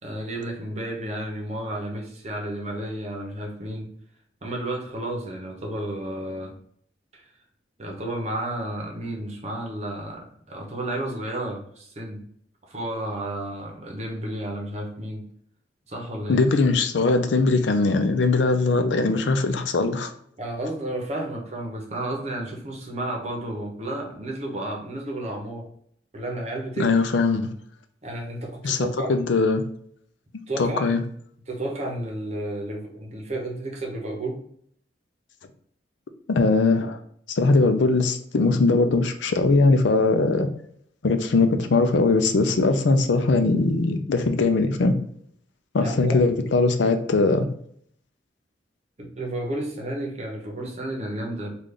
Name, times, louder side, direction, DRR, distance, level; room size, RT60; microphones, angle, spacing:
voice 1, 0.0-3.9 4.4-6.6 7.1-7.3 7.8-12.2 12.6-15.3 15.9-16.4 20.4-25.7 26.1-27.0 28.0-29.1 30.5-31.0 31.5-34.4 45.8-46.1 49.0-51.6, right 1 dB, 35° right, 0 dB, 0.9 m, -32 dB
voice 2, 16.3-20.1 26.8-27.5 28.6-28.8 29.1-29.6 30.6-31.0 36.3-37.0 37.3-40.5 41.0-44.9 45.7-47.5, left 3 dB, 80° left, 7 dB, 0.5 m, -20 dB
3.3 x 2.5 x 3.7 m, 0.64 s
head